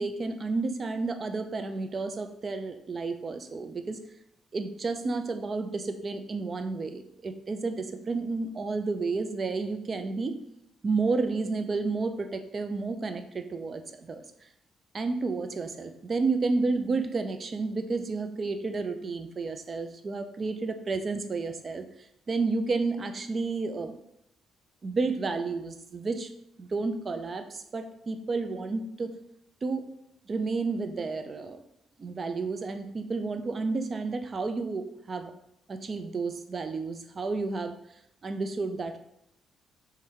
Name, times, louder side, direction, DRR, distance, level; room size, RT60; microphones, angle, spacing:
voice 1, 0.0-4.0 4.5-10.4 10.8-14.2 14.9-21.8 22.3-24.0 24.8-26.3 26.6-29.2 29.6-29.9 30.3-31.6 32.0-35.3 35.7-37.8 38.2-39.0, right 3 dB, 40° right, 8 dB, 0.5 m, -31 dB
3.4 x 3.4 x 4.7 m, 0.76 s
cardioid pair, 90°, 0 cm